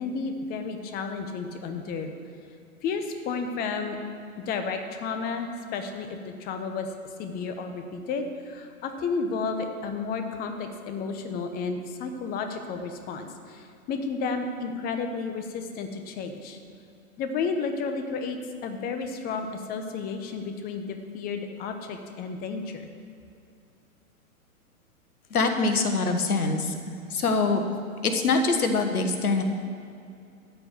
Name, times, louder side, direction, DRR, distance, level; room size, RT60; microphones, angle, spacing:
voice 1, 0.0-2.1 2.8-4.0 4.4-6.9 7.2-16.6 17.2-18.4 18.6-22.8, left 4 dB, 20° left, 6 dB, 0.8 m, -32 dB
voice 2, 25.3-26.8 27.1-27.6 28.0-29.4, left 3 dB, 80° left, 6 dB, 1.5 m, -24 dB
13.5 x 4.6 x 8.5 m, 2.5 s
hypercardioid pair, 115°, 44 cm